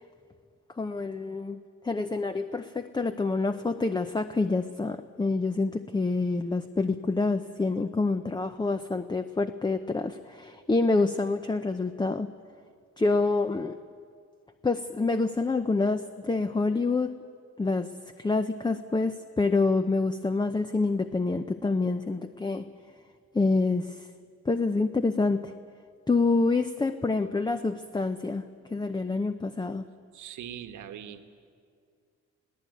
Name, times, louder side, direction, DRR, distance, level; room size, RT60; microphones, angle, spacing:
voice 1, 0.8-12.3 13.0-13.8 14.6-17.1 17.6-17.9 18.2-22.7 23.3-24.1 24.5-25.5 26.1-28.4 28.7-29.8, left 3 dB, 15° left, 9 dB, 0.7 m, -27 dB
voice 2, 30.1-31.2, right 10 dB, 75° right, 7 dB, 1.5 m, -41 dB
21.0 x 16.5 x 9.3 m, 2.2 s
cardioid pair, 90°, 30 cm